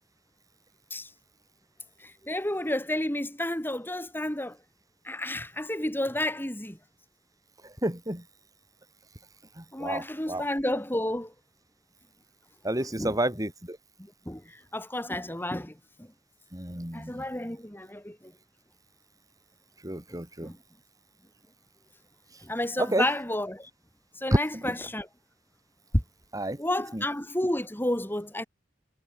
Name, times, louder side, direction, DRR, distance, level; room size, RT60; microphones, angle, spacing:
voice 1, 2.0-4.6 5.0-6.8 9.7-11.3 13.0-13.2 14.3-16.1 16.9-18.3 20.4-20.6 22.4-23.7 24.1-25.1 26.6-28.4, left 1 dB, 10° left, 4.2 m, -31 dB
voice 2, 7.6-8.2 9.6-10.4 12.6-13.8 16.5-17.2 19.8-20.5 22.8-23.0 24.6-24.7 26.3-26.6 26.9-27.0, right 1 dB, 20° right, 7.2 m, -31 dB
head